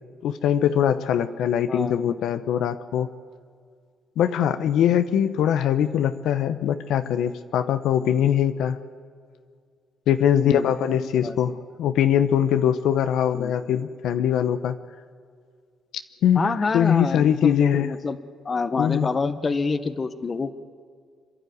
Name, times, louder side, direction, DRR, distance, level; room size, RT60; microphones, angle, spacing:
voice 1, 0.2-3.1 4.2-8.8 10.1-14.8 16.2-17.9 18.8-19.1, left 9 dB, 80° left, 10 dB, 0.8 m, -22 dB
voice 2, 10.3-10.7 11.2-11.3 13.3-13.5 16.3-18.2 18.4-20.5, left 4 dB, 35° left, 12 dB, 1.2 m, -26 dB
27.0 x 11.5 x 9.4 m, 2.1 s
cardioid pair, 90°, 0 cm